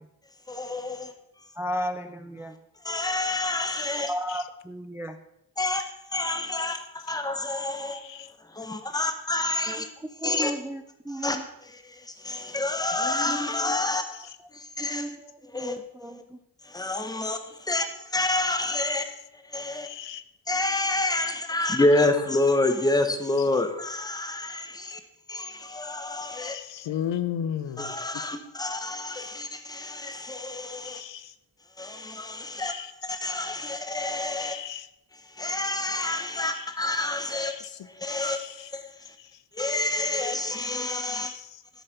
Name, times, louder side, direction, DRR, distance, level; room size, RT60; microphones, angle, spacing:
voice 1, 0.5-1.1 2.8-4.1 5.6-8.0 8.6-9.9 10.2-10.5 11.2-11.4 12.2-14.0 14.8-15.1 15.5-15.8 16.1-16.2 16.7-17.4 17.7-19.0 19.5-19.9 20.5-25.0 25.3-26.6 27.8-31.0 31.8-32.7 33.0-34.6 35.4-37.5 38.0-38.4 38.7-38.8 39.6-41.3, left 2 dB, 10° left, 0.9 m, -28 dB
voice 2, 1.6-2.5 3.9-5.2 9.7-9.8 10.2-11.4 13.0-13.4 14.9-16.2, equal, 5° right, 0.3 m, -34 dB
voice 3, 7.9-8.3 19.8-20.2 21.7-21.8 26.4-27.9 30.8-31.3 32.6-32.9 34.4-34.9 36.4-36.7 37.4-37.7 38.2-38.7 41.2-41.4, left 9 dB, 75° left, 0.8 m, -35 dB
12.5 x 6.9 x 5.7 m
wide cardioid pair, 170°, 44 cm